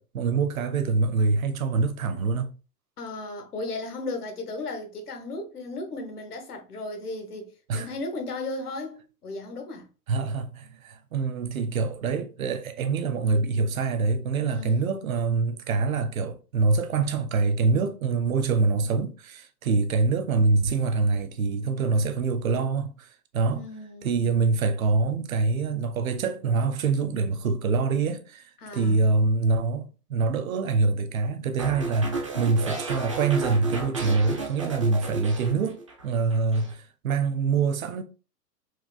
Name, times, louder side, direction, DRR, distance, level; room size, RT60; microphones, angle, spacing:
voice 1, 0.0-2.5 7.7-7.9 10.1-23.1 23.3-23.6 24.0-28.4 28.7-38.0, right 4 dB, 55° right, 0.7 m, -25 dB
voice 2, 3.0-9.9 14.5-15.0 23.4-24.2 28.6-29.1, left 2 dB, 70° left, 1.1 m, -36 dB
sound 1, 31.6-36.0 36.3-36.7, right 3 dB, 25° right, 0.3 m, -33 dB
4.8 x 2.5 x 2.4 m
figure-of-eight pair, 115°, 48 cm